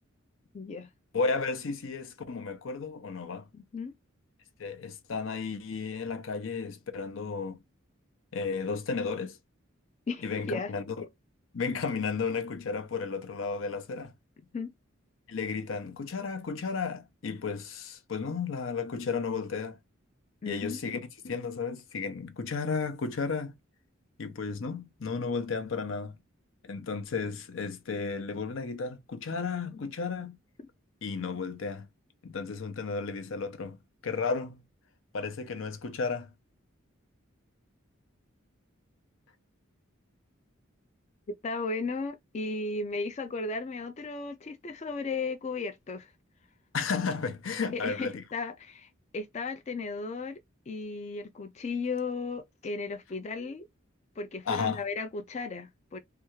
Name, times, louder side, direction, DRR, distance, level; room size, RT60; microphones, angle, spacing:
voice 1, 0.5-0.9 3.5-3.9 10.1-10.7 14.5-14.7 20.4-20.8 29.7-29.8 41.3-46.1 47.7-50.4 50.7-53.7 54.2-56.0, left 3 dB, 35° left, 0.4 m, -35 dB
voice 2, 1.1-3.5 4.6-7.6 8.3-9.4 10.2-11.1 11.5-14.1 15.3-19.8 20.4-23.5 24.2-26.2 26.6-30.4 31.0-31.9 32.2-33.8 34.0-34.6 35.1-36.3 46.7-48.2 54.5-54.8, left 4 dB, 75° left, 0.6 m, -33 dB
3.4 x 2.3 x 3.0 m
head